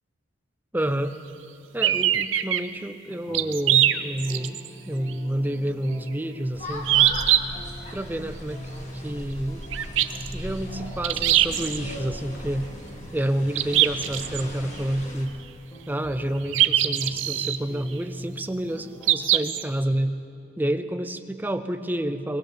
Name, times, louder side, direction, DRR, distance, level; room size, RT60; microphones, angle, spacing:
voice 1, 0.7-1.1 1.7-7.1 7.9-9.7 10.1-12.7 13.1-15.4 15.9-20.2 20.6-22.4, right 1 dB, 10° right, 9 dB, 0.5 m, -29 dB
sound 1, 1.8-2.6 3.3-4.7 5.1-5.2 6.9-7.4 9.7-10.3 11.0-11.8 13.6-14.4 16.5-17.6 19.0-19.6, right 12 dB, 80° right, 0.5 m, -21 dB
sound 2, 3.1-19.4, equal, 20° left, 1.2 m, -42 dB
sound 3, 6.5-15.3, left 1 dB, 35° left, 1.9 m, -38 dB
23.0 x 18.0 x 3.4 m, 2.8 s
head